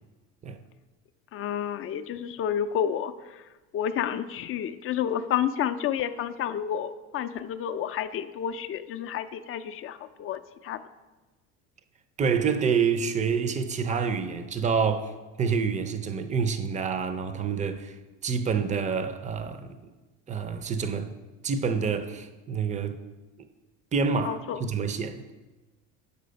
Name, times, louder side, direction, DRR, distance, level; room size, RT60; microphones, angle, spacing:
voice 1, 1.3-10.8 24.2-24.7, left 9 dB, 40° left, 0.4 m, -30 dB
voice 2, 12.2-15.1 15.4-17.9 18.2-19.8 20.3-21.1 21.4-23.0 23.9-25.3, right 6 dB, 20° right, 0.5 m, -27 dB
6.8 x 4.7 x 5.1 m
supercardioid pair, 95°, 36 cm